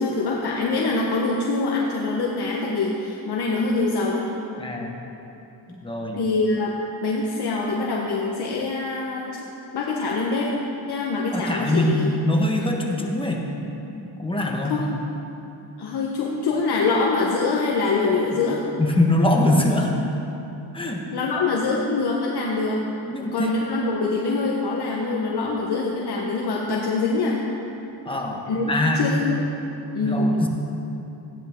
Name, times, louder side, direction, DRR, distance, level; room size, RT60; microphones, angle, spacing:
voice 1, 0.0-4.3 6.1-9.4 9.7-10.6 10.9-12.1 14.6-15.0 15.8-18.6 21.1-22.8 23.2-27.4 28.5-29.5 29.9-30.4, left 3 dB, 60° left, -2 dB, 1.2 m, -24 dB
voice 2, 4.6-4.9 5.7-6.2 11.3-13.4 13.9-14.8 18.3-18.4 18.8-19.9 20.7-21.0 23.1-23.5 28.0-28.4 28.7-29.1 30.0-30.5, left 1 dB, 10° left, 0 dB, 1.4 m, -23 dB
15.5 x 10.0 x 3.8 m, 3.0 s
cardioid pair, 105°, 45 cm